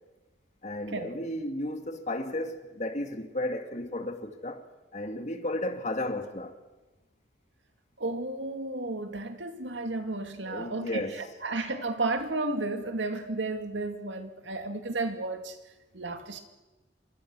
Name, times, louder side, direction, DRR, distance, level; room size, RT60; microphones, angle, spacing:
voice 1, 0.6-4.7 4.9-6.5 10.5-11.2, left 1 dB, 40° left, 2.1 m, -33 dB
voice 2, 8.0-15.6 15.9-16.4, right 2 dB, 80° right, 2.4 m, -33 dB
26.5 x 23.5 x 6.2 m
head